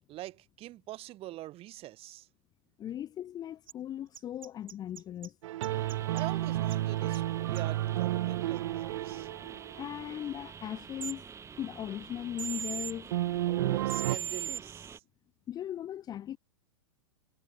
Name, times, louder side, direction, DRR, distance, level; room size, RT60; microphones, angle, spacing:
voice 1, 0.1-2.3 6.1-9.3 13.4-15.0, right 16 dB, 35° right, 3.5 m, -44 dB
voice 2, 2.8-5.3 9.4-11.3 11.6-13.1 15.5-16.4, left 11 dB, 25° left, 0.8 m, -38 dB
sound 1, 3.7-3.8 4.1-5.3 5.6-6.2 6.7-6.8 7.1-7.2 7.6-7.7 11.0-11.1 12.4-12.9 13.9-14.6, right 8 dB, 90° right, 1.4 m, -37 dB
sound 2, 5.4-10.2 13.1-14.2, right 15 dB, 65° right, 0.7 m, -31 dB
sound 3, 5.7-15.0, right 6 dB, 15° right, 3.0 m, -48 dB
hypercardioid pair, 125°, 17 cm